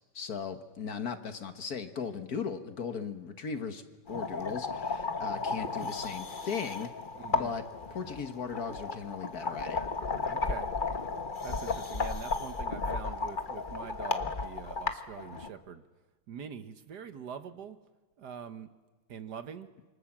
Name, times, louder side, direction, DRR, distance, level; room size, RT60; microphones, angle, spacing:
voice 1, 0.1-3.8 4.1-6.9 7.3-7.6 7.9-9.8, left 6 dB, 55° left, 9 dB, 1.7 m, -37 dB
sound 1, 4.1-15.5, left 4 dB, 30° left, 1.2 m, -34 dB
voice 2, 5.7-6.1 7.1-7.6 10.2-10.7 11.4-15.8 16.3-17.8 18.2-18.7 19.1-19.7, right 7 dB, 60° right, 10 dB, 1.5 m, -44 dB
27.0 x 24.5 x 7.3 m, 1.2 s
omnidirectional pair, 2.1 m